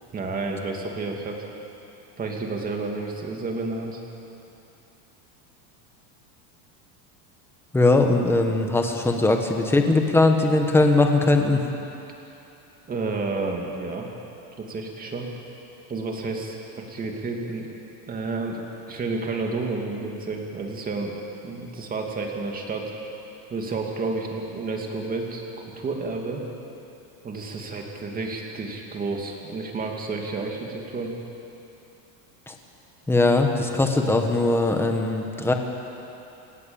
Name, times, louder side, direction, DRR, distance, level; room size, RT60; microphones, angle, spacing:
voice 1, 0.1-1.4 2.2-4.0 12.9-14.1 14.6-15.3 15.9-17.7 18.1-21.1 21.4-22.9 23.5-26.4 27.2-31.1, right 3 dB, 20° right, 1 dB, 2.6 m, -30 dB
voice 2, 7.7-11.7 32.5-32.6 33.1-35.5, left 2 dB, 5° left, 3 dB, 1.4 m, -20 dB
28.5 x 18.0 x 7.2 m, 2.9 s
supercardioid pair, 160°, 48 cm